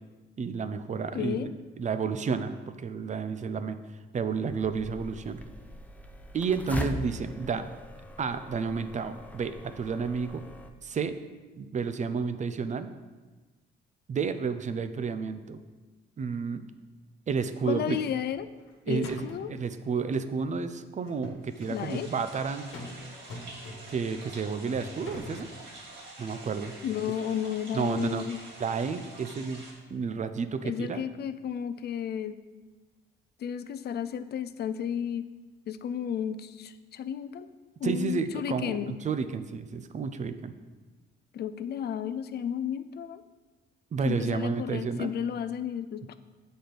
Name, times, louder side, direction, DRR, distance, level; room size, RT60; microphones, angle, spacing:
voice 1, 0.4-3.8 4.1-5.4 6.3-7.6 8.2-10.5 10.8-11.2 11.6-12.9 14.1-15.6 16.2-16.7 17.3-18.0 18.9-22.6 23.9-25.5 26.2-26.7 27.7-28.2 28.6-29.6 29.9-31.1 37.8-40.5 43.9-45.1, right 5 dB, 35° right, 11 dB, 0.5 m, -31 dB
voice 2, 1.1-1.5 17.7-18.5 18.9-19.5 21.7-22.1 26.8-28.4 30.6-32.4 33.4-35.2 35.7-37.5 37.8-38.9 41.3-43.2 44.0-46.1, left 9 dB, 55° left, 12 dB, 0.4 m, -33 dB
sound 1, 4.5-10.7, left 1 dB, 5° left, 0.6 m, -41 dB
sound 2, 18.4-18.7 19.0-19.6 21.0-22.0 22.7-23.0 23.3-24.1 24.7-25.5, left 2 dB, 90° left, 1.3 m, -43 dB
sound 3, 21.4-29.7, right 2 dB, 60° right, 2.4 m, -47 dB
7.6 x 4.3 x 5.1 m, 1.3 s
cardioid pair, 90°, 20 cm